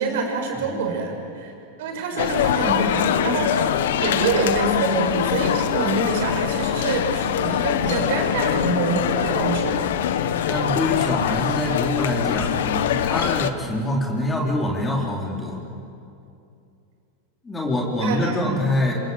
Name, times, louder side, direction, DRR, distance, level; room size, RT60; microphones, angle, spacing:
voice 1, 0.0-1.5 1.8-9.8 18.0-18.7, right 4 dB, 70° right, 3 dB, 6.8 m, -26 dB
voice 2, 0.6-1.0 10.5-15.6 17.4-18.9, left 1 dB, 15° left, -2 dB, 4.1 m, -25 dB
sound 1, 2.2-13.5, left 10 dB, 80° left, 1.3 m, -23 dB
27.0 x 26.0 x 8.1 m, 2.6 s
supercardioid pair, 125°, 0 cm